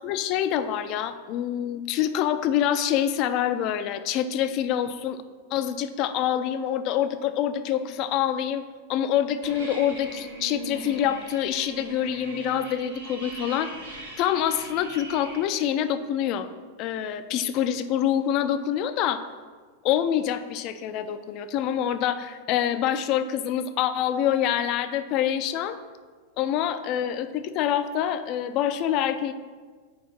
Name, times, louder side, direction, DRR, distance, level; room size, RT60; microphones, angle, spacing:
voice 1, 0.0-5.2 5.5-8.6 8.9-13.7 14.2-16.5 16.8-19.2 19.8-25.8 26.4-29.3, left 10 dB, 40° left, 11 dB, 0.4 m, -26 dB
sound 1, 9.4-15.4, right 2 dB, 80° right, 2.0 m, -40 dB
4.9 x 4.7 x 5.9 m, 1.5 s
figure-of-eight pair, 90°, 0 cm